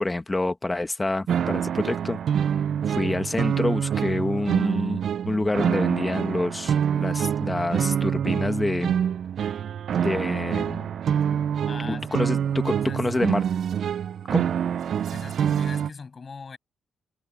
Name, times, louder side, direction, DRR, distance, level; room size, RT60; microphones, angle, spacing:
voice 1, 0.0-2.2 2.9-9.0 10.0-10.9 11.8-13.4 14.3-14.5, left 2 dB, 15° left, 1.5 m, -27 dB
sound 1, 1.3-15.9, right 8 dB, 60° right, 0.4 m, -26 dB
voice 2, 11.6-12.3 12.8-13.0 15.1-16.6, left 5 dB, 35° left, 7.4 m, -40 dB
cardioid pair, 90°, 0 cm